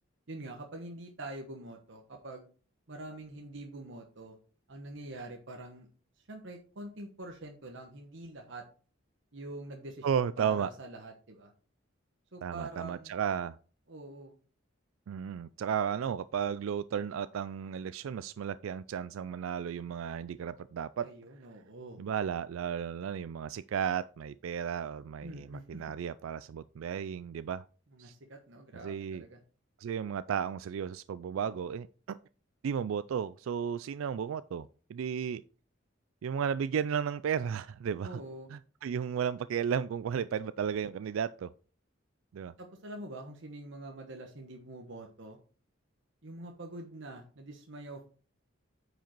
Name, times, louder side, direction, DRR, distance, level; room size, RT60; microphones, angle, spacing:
voice 1, 0.3-2.5 2.9-4.4 4.7-5.9 6.2-8.6 9.3-11.5 12.3-13.1 13.9-14.3 21.0-22.0 25.2-25.8 27.9-29.4 38.0-38.5 42.6-45.4 46.2-48.1, right 2 dB, 65° right, 1.1 m, -45 dB
voice 2, 10.0-10.7 12.4-13.6 15.1-21.1 22.0-27.6 28.0-28.1 28.8-29.2 29.8-32.2 32.6-35.4 36.2-38.2 38.5-41.5 42.3-42.5, right 7 dB, 85° right, 0.3 m, -34 dB
9.0 x 5.1 x 4.5 m
head